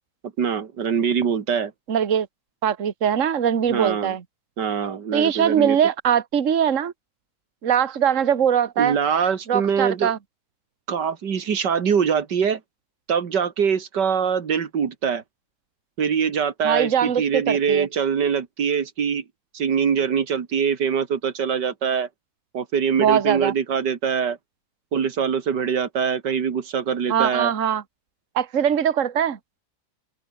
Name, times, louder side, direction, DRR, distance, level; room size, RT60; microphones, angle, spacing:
voice 1, 0.4-1.7 3.7-4.2 4.6-5.8 8.8-10.1 10.9-12.6 13.1-15.2 16.0-19.2 19.5-22.1 22.5-24.4 24.9-27.5, right 7 dB, 90° right, 2.4 m, -23 dB
voice 2, 1.9-2.3 2.6-4.2 5.1-6.9 7.6-9.0 9.5-10.2 16.6-17.9 23.0-23.5 27.1-27.8 28.4-29.4, right 8 dB, 50° right, 1.7 m, -21 dB
open air
omnidirectional pair, 1.8 m